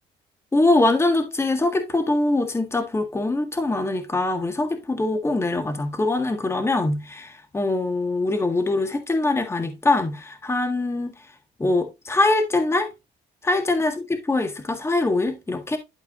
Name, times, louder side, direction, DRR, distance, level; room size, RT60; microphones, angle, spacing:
voice 1, 0.5-11.1 11.6-12.9 13.4-15.8, left 2 dB, 15° left, 1.7 m, -23 dB
12.0 x 4.8 x 2.5 m
cardioid pair, 110°, 17 cm